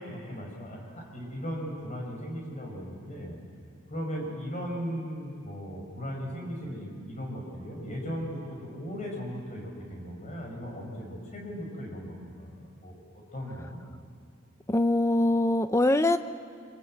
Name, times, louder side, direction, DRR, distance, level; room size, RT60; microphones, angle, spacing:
voice 1, 0.0-3.4 3.9-13.0 13.3-13.8, equal, 35° left, 0 dB, 6.3 m, -37 dB
voice 2, 14.7-16.2, left 1 dB, 15° left, 11 dB, 0.6 m, -23 dB
29.5 x 25.0 x 7.8 m, 2.2 s
head